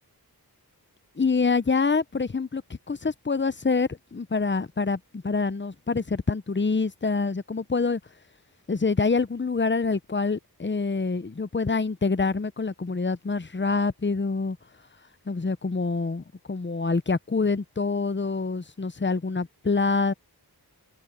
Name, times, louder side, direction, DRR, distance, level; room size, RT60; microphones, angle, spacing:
voice 1, 1.2-8.0 8.7-14.6 15.3-20.1, left 4 dB, 30° left, 0.7 m, -26 dB
wide cardioid pair, 40°, 40 cm